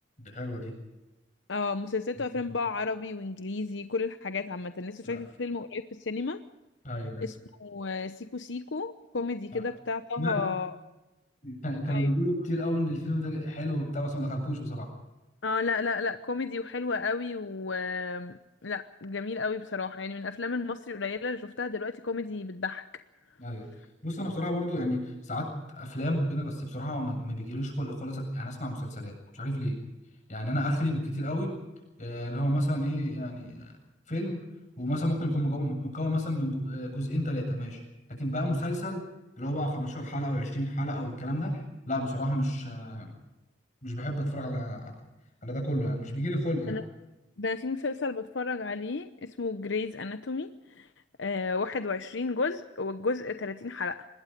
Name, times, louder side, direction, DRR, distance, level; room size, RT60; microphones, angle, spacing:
voice 1, 0.2-0.8 5.0-5.2 6.8-7.2 9.5-9.6 10.2-10.4 11.4-14.9 23.4-23.7 24.0-25.5 25.7-29.7 30.3-31.5 32.0-33.7 34.1-34.4 34.8-37.8 38.1-39.0 39.4-41.6 41.9-43.1 43.8-44.9 45.4-46.8, equal, 40° left, 3 dB, 7.8 m, -31 dB
voice 2, 1.5-6.4 7.2-10.7 11.9-12.1 15.4-22.8 46.7-46.8 47.4-50.9 51.2-54.1, left 4 dB, 80° left, 9 dB, 0.9 m, -32 dB
25.5 x 21.0 x 5.3 m, 1.0 s
head